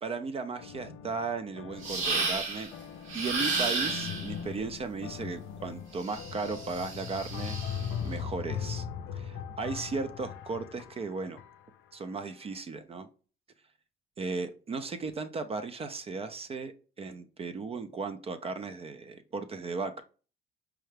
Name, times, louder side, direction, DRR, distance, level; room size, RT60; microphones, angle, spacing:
voice 1, 0.0-2.7 3.1-8.8 9.1-11.4 11.9-13.1 14.2-20.0, right 4 dB, 30° right, 10 dB, 0.4 m, -36 dB
sound 1, 0.6-12.0, left 7 dB, 65° left, 0.5 m, -40 dB
sound 2, 1.8-2.7 3.1-4.3 6.0-7.9, right 3 dB, 70° right, 1.3 m, -32 dB
4.7 x 2.1 x 3.1 m, 0.37 s
cardioid pair, 115°, 21 cm